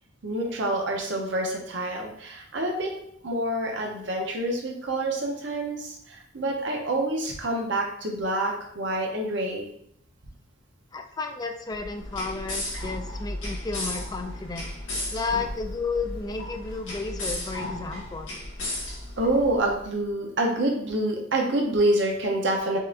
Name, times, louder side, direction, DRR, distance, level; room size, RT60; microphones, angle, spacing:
voice 1, 0.2-2.9 3.2-9.7 19.2-22.8, right 1 dB, 65° right, 0 dB, 0.8 m, -27 dB
voice 2, 10.9-14.7 15.1-18.4, left 4 dB, 20° left, 6 dB, 0.3 m, -32 dB
sound 1, 11.7-19.8, left 1 dB, 75° left, 1.5 m, -35 dB
5.3 x 2.7 x 2.5 m, 0.69 s
head